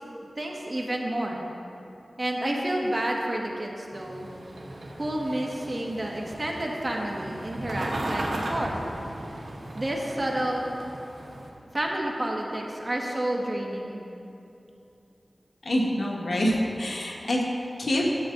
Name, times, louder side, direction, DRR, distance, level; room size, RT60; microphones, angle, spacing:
voice 1, 0.4-1.4 2.2-4.3 5.0-8.8 9.7-10.7 11.7-14.0, right 1 dB, 40° right, -1 dB, 1.4 m, -30 dB
sound 1, 3.9-11.5, right 1 dB, 80° right, 1.3 m, -36 dB
voice 2, 15.6-17.4 17.8-18.0, left 1 dB, 80° left, -2 dB, 1.3 m, -26 dB
12.0 x 7.6 x 3.8 m, 2.8 s
wide cardioid pair, 55°, 0 cm